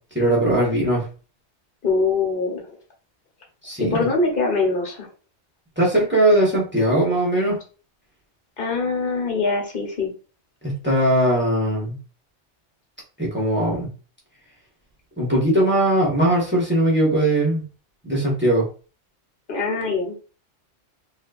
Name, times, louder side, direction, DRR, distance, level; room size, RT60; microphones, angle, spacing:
voice 1, 0.1-1.0 3.6-4.0 5.8-7.6 10.6-11.9 13.2-13.9 15.2-17.6 18.0-18.6, right 1 dB, 10° right, -4 dB, 1.3 m, -20 dB
voice 2, 1.8-2.7 3.8-5.1 8.6-10.1 19.5-20.1, left 3 dB, 50° left, 1 dB, 1.1 m, -23 dB
4.1 x 2.6 x 2.5 m, 0.35 s
omnidirectional pair, 1.2 m